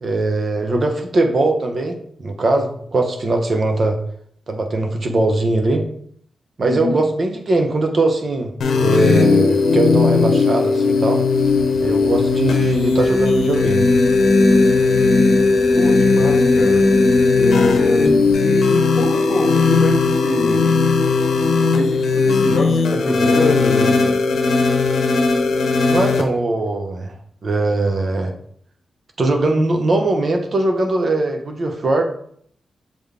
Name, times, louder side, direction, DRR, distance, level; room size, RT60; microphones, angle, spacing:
voice 1, 0.0-4.0 4.5-5.8 6.6-11.2 11.8-13.8 25.9-27.1 27.4-28.3 29.2-32.0, right 2 dB, 45° right, 4 dB, 0.8 m, -20 dB
voice 2, 6.6-7.0 15.7-16.8 17.4-20.7 21.7-24.1, left 3 dB, 60° left, 0 dB, 1.2 m, -24 dB
sound 1, 8.6-26.2, left 3 dB, 80° left, 0.9 m, -16 dB
sound 2, 11.3-18.3, right 1 dB, 70° right, 2.6 m, -37 dB
6.9 x 4.0 x 3.5 m, 0.63 s
wide cardioid pair, 130°, 0 cm